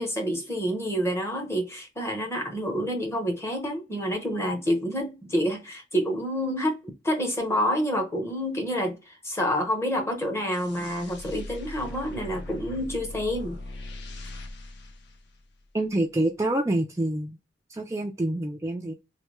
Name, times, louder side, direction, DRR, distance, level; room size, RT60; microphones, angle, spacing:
voice 1, 0.0-6.8 7.0-13.6, equal, 15° left, 0.8 m, -28 dB
sound 1, 10.5-15.9, left 2 dB, 60° left, 0.6 m, -40 dB
voice 2, 15.7-17.4 17.7-18.9, right 1 dB, 15° right, 0.3 m, -27 dB
3.3 x 2.2 x 3.0 m
head